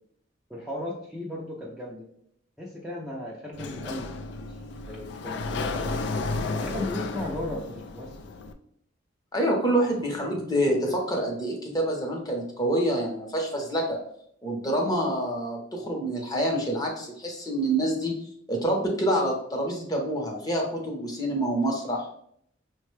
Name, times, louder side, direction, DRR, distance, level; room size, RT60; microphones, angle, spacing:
voice 1, 0.5-2.1 2.6-4.1 4.4-4.6 4.9-6.0 6.6-8.2 9.7-9.9 10.3-10.4, left 1 dB, ahead, -5 dB, 0.5 m, -36 dB
Sliding door, 3.5-8.5, left 3 dB, 60° left, 0.3 m, -33 dB
voice 2, 9.3-14.0 14.4-18.1 18.5-22.1, right 1 dB, 20° left, 1 dB, 0.8 m, -27 dB
5.7 x 2.2 x 3.1 m, 0.69 s
head